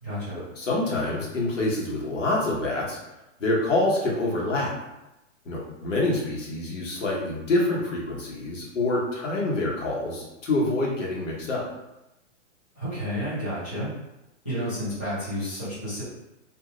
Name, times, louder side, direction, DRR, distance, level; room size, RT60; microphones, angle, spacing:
voice 1, 0.0-0.4 12.7-13.9 14.4-16.0, equal, 10° left, -16 dB, 0.4 m, -31 dB
voice 2, 0.6-3.0 3.4-4.7 5.4-11.6, left 2 dB, 75° left, -3 dB, 1.2 m, -26 dB
2.7 x 2.0 x 3.7 m, 0.94 s
hypercardioid pair, 175°, 38 cm